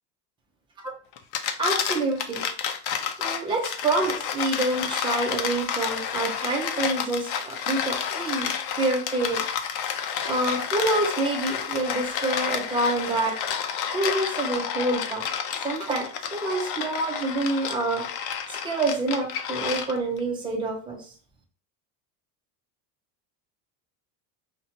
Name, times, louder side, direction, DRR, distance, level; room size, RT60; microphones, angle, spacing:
sound 1, 1.2-20.2, left 8 dB, 70° left, 0.6 m, -30 dB
voice 1, 1.6-2.4 3.2-8.5 8.8-9.4 10.2-13.4 13.9-15.3 15.6-18.1 18.6-21.1, right 2 dB, 10° right, 0 dB, 0.3 m, -27 dB
4.2 x 2.1 x 2.7 m, 0.41 s
supercardioid pair, 140°, 47 cm